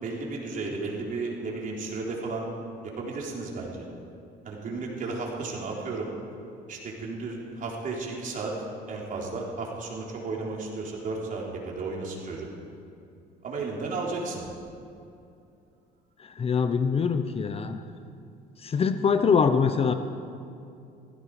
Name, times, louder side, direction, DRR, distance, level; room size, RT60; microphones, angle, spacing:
voice 1, 0.0-2.5 2.8-3.8 4.5-6.1 6.7-8.5 8.9-12.5 13.4-14.4, right 3 dB, 50° right, -2 dB, 3.7 m, -33 dB
voice 2, 16.4-17.8 18.6-19.9, left 6 dB, 35° left, 9 dB, 0.8 m, -23 dB
16.5 x 15.0 x 4.9 m, 2.6 s
cardioid pair, 110°, 17 cm